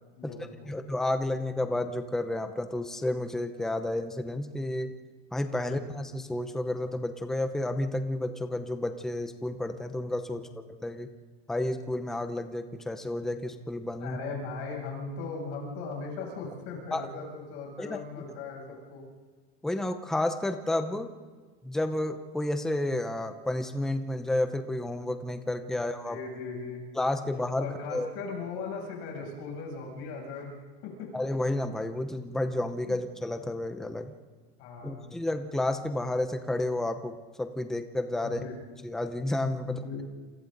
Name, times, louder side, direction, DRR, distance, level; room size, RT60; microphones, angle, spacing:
voice 1, 0.1-0.7 5.6-5.8 14.0-19.1 25.7-26.9 27.6-31.1 32.9-33.0 34.6-35.2 38.2-38.6 39.6-40.1, left 4 dB, 50° left, -1 dB, 7.5 m, -38 dB
voice 2, 0.7-4.9 5.3-11.1 11.5-14.2 16.9-17.1 17.8-18.3 19.6-21.1 21.6-26.2 26.9-28.1 31.1-34.1 34.8-38.4 38.8-39.8, left 1 dB, ahead, 7 dB, 0.7 m, -31 dB
28.0 x 27.0 x 4.0 m, 1.4 s
supercardioid pair, 170°, 31 cm